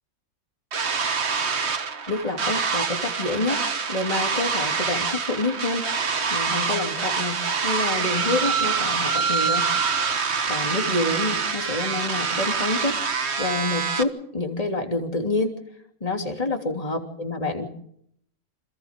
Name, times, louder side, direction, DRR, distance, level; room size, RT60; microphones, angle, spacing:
sound 1, 0.7-14.0, right 5 dB, 55° right, 1.6 m, -25 dB
voice 1, 2.1-3.6 3.9-5.9 6.3-9.7 10.5-13.0 13.4-15.6 16.0-17.7, left 2 dB, 25° left, 3 dB, 3.2 m, -27 dB
28.5 x 27.0 x 3.8 m, 0.69 s
omnidirectional pair, 1.4 m